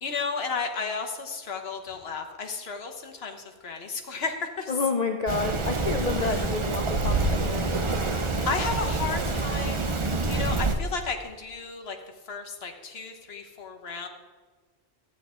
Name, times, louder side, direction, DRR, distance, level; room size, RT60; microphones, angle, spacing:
voice 1, 0.0-4.7 6.2-6.5 8.5-10.0 10.3-12.0 12.3-14.1, left 4 dB, 65° left, 5 dB, 1.4 m, -33 dB
voice 2, 4.7-7.7, left 4 dB, 45° left, 4 dB, 0.6 m, -29 dB
Rain, 5.3-10.8, right 3 dB, 30° right, 0.7 m, -27 dB
13.5 x 9.1 x 3.7 m, 1.5 s
omnidirectional pair, 1.1 m